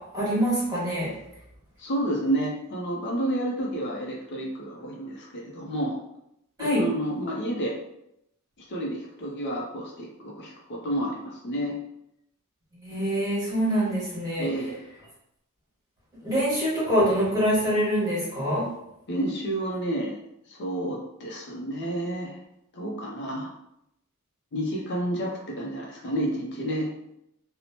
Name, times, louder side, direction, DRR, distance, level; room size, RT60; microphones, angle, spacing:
voice 1, 0.1-1.1 6.6-6.8 12.7-14.5 16.2-18.6, equal, 15° right, -8 dB, 1.4 m, -25 dB
voice 2, 1.8-6.0 6.6-7.8 8.7-11.8 14.4-14.8 19.1-20.2 20.5-22.4 22.7-23.5 24.5-26.9, right 1 dB, 50° left, -2 dB, 0.5 m, -30 dB
2.9 x 2.0 x 2.8 m, 0.81 s
head